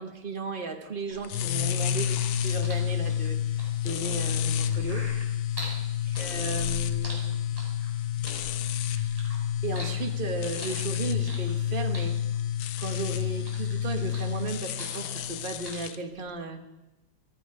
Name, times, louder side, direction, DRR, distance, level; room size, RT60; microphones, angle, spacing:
voice 1, 0.0-5.0 6.1-7.4 9.6-12.2 12.8-16.6, right 3 dB, 30° right, 5 dB, 1.2 m, -35 dB
sound 1, 1.2-16.0, left 9 dB, 70° left, 1.0 m, -29 dB
sound 2, 1.4-5.8 6.1-7.9 8.3-9.4 9.7-11.6 11.9-13.0 13.3-15.3 15.7-15.8, right 1 dB, 10° right, 4.0 m, -43 dB
15.0 x 14.0 x 4.8 m, 0.99 s
omnidirectional pair, 2.1 m